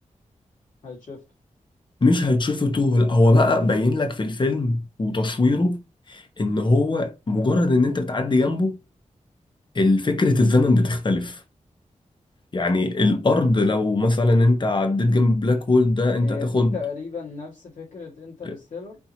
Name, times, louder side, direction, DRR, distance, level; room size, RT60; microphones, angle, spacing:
voice 1, 0.8-1.2 13.0-13.2 16.2-19.0, left 5 dB, 75° left, 2.0 m, -35 dB
voice 2, 2.0-5.8 6.1-8.8 9.7-11.4 12.5-16.7 18.4-18.5, left 2 dB, 35° left, 0.9 m, -20 dB
5.4 x 2.9 x 2.8 m
wide cardioid pair, 90°, 13 cm